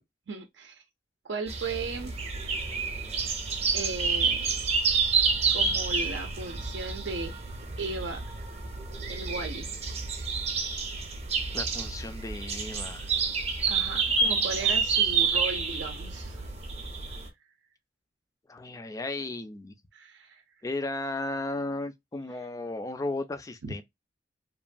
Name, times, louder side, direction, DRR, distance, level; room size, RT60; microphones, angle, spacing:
voice 1, 0.3-0.8 1.2-2.1 3.7-4.6 5.5-8.2 9.1-9.8 13.7-16.4 19.9-20.4 23.6-23.7, right 3 dB, 85° right, 0.5 m, -36 dB
sound 1, 1.5-17.3, right 5 dB, 35° right, 0.6 m, -29 dB
voice 2, 11.5-13.1 14.2-14.8 18.5-19.7 20.6-23.8, left 2 dB, 20° left, 0.4 m, -35 dB
3.0 x 2.2 x 2.4 m
head